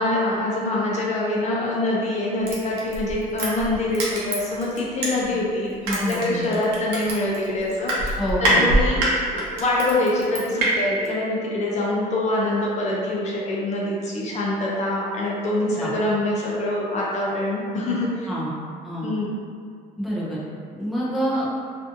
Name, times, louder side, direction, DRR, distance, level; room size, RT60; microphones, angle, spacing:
voice 1, 0.0-9.0 9.3-18.3 19.0-19.3, left 1 dB, 45° left, -4 dB, 0.5 m, -25 dB
Crushing, 2.5-5.5 5.8-10.7 11.1-11.2, right 1 dB, 85° right, 0.7 m, -24 dB
voice 2, 5.8-6.6 8.2-8.7 15.7-15.9 18.3-18.5 18.8-19.1 20.0-20.4 20.7-21.5, equal, ahead, -7 dB, 0.6 m, -27 dB
2.5 x 2.4 x 2.5 m, 2.2 s
cardioid pair, 110°, 17 cm